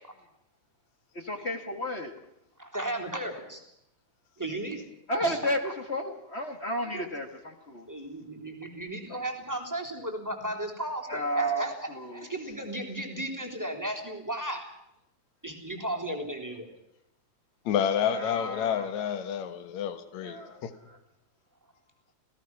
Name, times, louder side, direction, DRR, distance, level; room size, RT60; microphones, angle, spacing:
voice 1, 1.1-2.1 5.1-5.6 5.9-7.9 9.1-9.2 11.1-12.3 18.1-19.1 20.2-21.0, equal, 30° left, 1.4 m, -33 dB
voice 2, 2.6-3.6 4.4-4.9 5.2-5.5 6.9-7.1 7.9-14.7 15.4-16.7, right 1 dB, 5° right, 3.0 m, -35 dB
voice 3, 17.7-20.7, left 8 dB, 70° left, 2.7 m, -29 dB
28.0 x 17.5 x 6.0 m
omnidirectional pair, 3.4 m